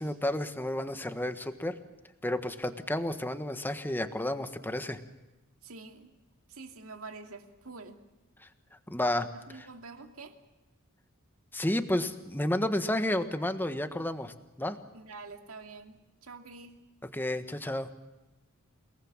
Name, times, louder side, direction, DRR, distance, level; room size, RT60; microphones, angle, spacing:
voice 1, 0.0-1.7 2.2-5.0 8.4-8.5 8.9-9.3 9.6-9.7 11.5-14.8 17.1-17.9, left 1 dB, 10° left, 9 dB, 1.4 m, -31 dB
voice 2, 5.6-6.1 6.5-8.0 9.3-10.4 14.9-16.7, right 3 dB, 70° right, 5 dB, 2.4 m, -47 dB
29.0 x 19.0 x 7.4 m, 1.1 s
head